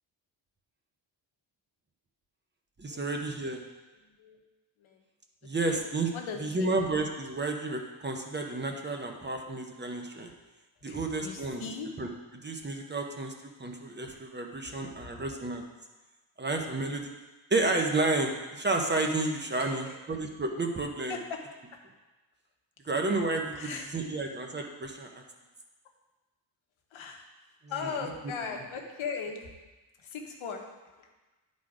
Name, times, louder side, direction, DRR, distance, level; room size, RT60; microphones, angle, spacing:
voice 1, 2.8-3.6 5.4-6.1 6.4-10.3 10.8-11.7 12.0-12.1 12.4-13.3 13.6-15.7 16.4-17.1 17.5-21.2 22.9-25.1 28.0-28.1, right 2 dB, 25° right, 2 dB, 0.8 m, -31 dB
voice 2, 6.1-6.7 10.9-11.9 15.0-15.2 19.6-19.9 21.1-21.4 23.5-24.0 26.9-27.2 27.7-29.5 30.1-30.6, left 5 dB, 85° left, 2 dB, 1.2 m, -38 dB
10.0 x 4.2 x 4.9 m, 1.2 s
wide cardioid pair, 130°, 47 cm